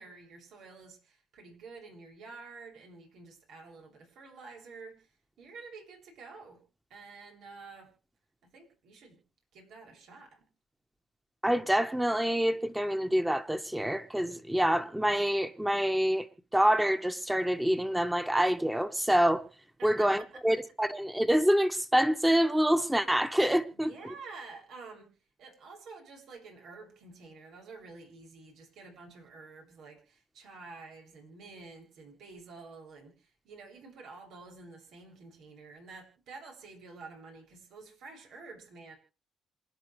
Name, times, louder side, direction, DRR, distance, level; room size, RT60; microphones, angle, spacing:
voice 1, 0.0-5.1 5.4-6.6 6.9-7.9 8.4-9.2 9.5-10.5 19.8-20.4 23.7-25.1 25.4-39.0, right 4 dB, 80° right, 7.4 m, -49 dB
voice 2, 11.4-16.3 16.5-19.4 19.8-23.9, equal, 5° right, 1.6 m, -26 dB
27.5 x 10.5 x 3.4 m
cardioid pair, 90°, 0 cm